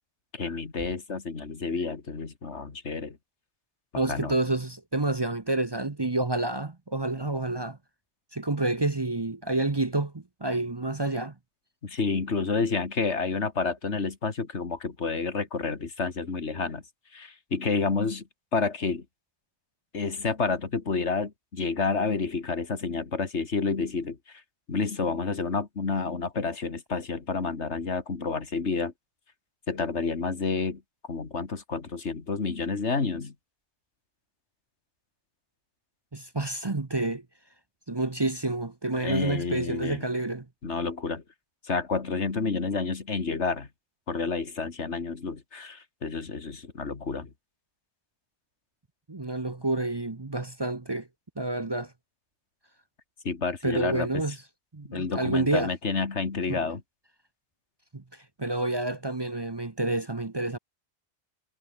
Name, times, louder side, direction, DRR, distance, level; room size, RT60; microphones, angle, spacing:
voice 1, 0.3-3.2 4.1-4.3 11.8-16.8 17.1-18.2 18.5-19.1 19.9-24.4 24.7-28.9 29.7-30.8 31.1-33.3 39.0-40.0 40.6-41.2 41.6-43.7 44.1-47.3 53.2-54.2 54.9-56.8, left 4 dB, 85° left, 2.4 m, -29 dB
voice 2, 3.9-7.8 8.3-11.3 36.1-37.2 37.9-40.5 49.1-51.1 51.4-51.9 53.6-54.4 54.7-55.7 56.5-56.6 57.9-60.6, right 2 dB, 25° right, 0.9 m, -29 dB
omnidirectional pair, 1.1 m